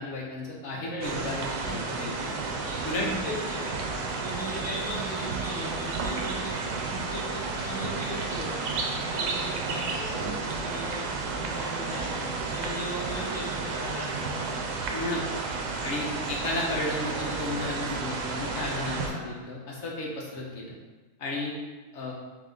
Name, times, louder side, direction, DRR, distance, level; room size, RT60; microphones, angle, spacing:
voice 1, 0.0-2.3 2.8-3.1 14.9-15.4 15.8-20.7 21.2-21.5 21.9-22.1, left 2 dB, 55° left, -3 dB, 1.1 m, -33 dB
voice 2, 0.7-2.0 2.6-14.7 18.9-19.4, equal, 10° right, -8 dB, 0.8 m, -38 dB
sound 1, 1.0-19.1, right 4 dB, 85° right, 1.2 m, -32 dB
3.6 x 3.4 x 3.7 m, 1.2 s
omnidirectional pair, 1.7 m